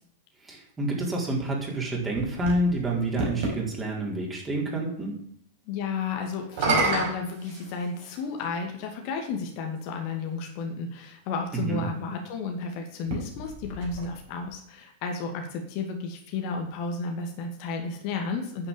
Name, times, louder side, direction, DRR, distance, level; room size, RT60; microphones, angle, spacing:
voice 1, 0.4-5.1 11.6-11.8, right 1 dB, 15° right, -2 dB, 4.6 m, -28 dB
sound 1, 1.7-3.6 6.4-8.2 9.1-9.2 12.9-14.5, right 3 dB, 50° right, 4.9 m, -30 dB
voice 2, 5.7-18.7, left 4 dB, 45° left, 3 dB, 2.3 m, -32 dB
9.9 x 9.0 x 7.3 m, 0.66 s
figure-of-eight pair, 90°, 0 cm